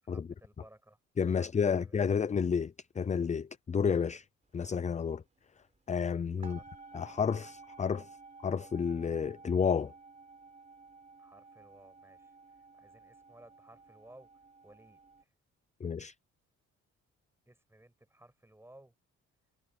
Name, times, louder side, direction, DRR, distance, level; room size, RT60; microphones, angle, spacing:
voice 1, 0.0-1.0 1.4-2.0 6.4-6.7 11.2-15.3 17.4-18.9, right 1 dB, 10° right, 6.3 m, -59 dB
voice 2, 1.2-4.2 4.5-5.2 5.9-6.6 6.9-8.1 8.4-9.9 15.8-16.1, left 6 dB, 25° left, 0.5 m, -31 dB
sound 1, 4.5-4.7 5.0-6.0 6.4-15.2, right 4 dB, 25° right, 3.9 m, -54 dB
cardioid pair, 90°, 30 cm